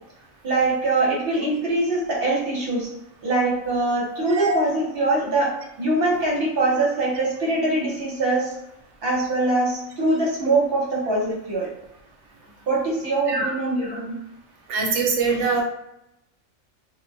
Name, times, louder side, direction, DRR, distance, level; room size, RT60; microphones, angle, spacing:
voice 1, 0.4-2.9 3.2-8.5 9.0-11.7 12.7-14.2 15.5-15.6, right 2 dB, 50° right, -4 dB, 0.9 m, -23 dB
voice 2, 14.7-15.6, right 4 dB, 70° right, 1 dB, 0.9 m, -23 dB
2.4 x 2.1 x 2.6 m, 0.83 s
omnidirectional pair, 1.4 m